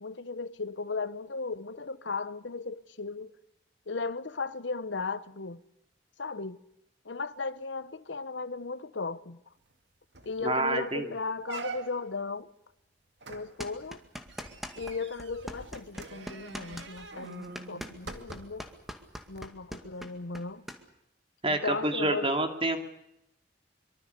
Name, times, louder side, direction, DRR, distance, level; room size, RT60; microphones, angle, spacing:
voice 1, 0.0-3.3 3.9-5.6 6.2-6.6 7.0-9.4 10.2-12.5 13.3-14.0 14.8-18.7 19.3-20.6 21.5-22.3, left 4 dB, 85° left, 1.0 m, -36 dB
sound 1, 9.7-9.8 10.1-10.5 10.9-11.0 11.4-12.2 13.2-18.7 19.3-19.4, right 4 dB, 70° right, 2.3 m, -44 dB
voice 2, 10.4-11.1 21.4-22.8, right 2 dB, 30° right, 2.6 m, -28 dB
sound 2, 13.6-14.9 15.2-20.8, equal, ahead, 2.1 m, -41 dB
24.0 x 24.0 x 6.8 m
head